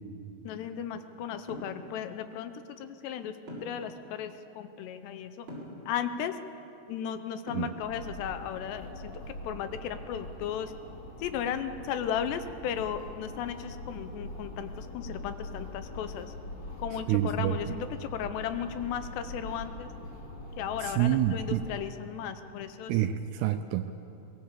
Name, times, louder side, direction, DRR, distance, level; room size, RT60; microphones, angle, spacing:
voice 1, 0.5-2.5 2.8-3.3 3.6-5.5 5.9-6.3 6.9-9.1 9.4-10.7 11.2-16.3 16.8-19.9 20.6-22.9, left 8 dB, 75° left, 10 dB, 2.8 m, -35 dB
sound 1, 1.5-1.8 3.5-3.9 5.5-5.8 7.5-7.9, equal, 25° right, 6.0 m, -41 dB
sound 2, 7.8-21.8, left 1 dB, 40° left, 3.2 m, -43 dB
voice 2, 17.1-17.8 20.8-21.6 22.9-24.0, right 11 dB, 80° right, 8 dB, 2.4 m, -28 dB
23.0 x 20.0 x 7.4 m, 2.9 s
omnidirectional pair, 5.2 m